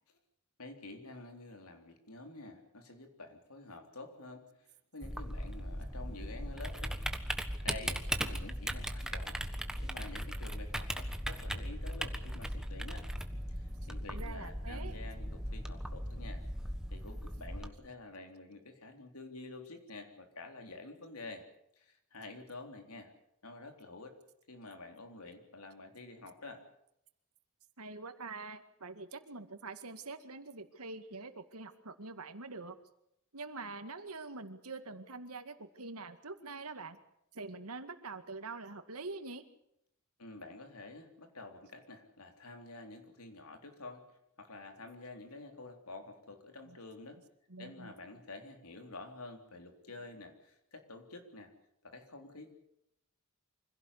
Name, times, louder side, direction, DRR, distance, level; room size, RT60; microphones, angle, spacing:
voice 1, 0.6-7.0 7.6-9.4 9.8-13.1 13.5-16.4 16.9-21.5 21.8-23.1 23.4-24.2 24.5-26.6 40.2-44.0 44.4-47.2 47.6-51.5 51.8-52.5, left 2 dB, 85° left, 5 dB, 3.7 m, -49 dB
Typing, 5.0-17.7, equal, 5° right, 1.4 m, -38 dB
voice 2, 14.1-14.9 27.8-32.8 33.3-37.0 37.3-39.4 46.7-46.8 47.5-47.9, right 3 dB, 85° right, 9 dB, 2.1 m, -45 dB
25.0 x 16.5 x 8.3 m, 0.77 s
head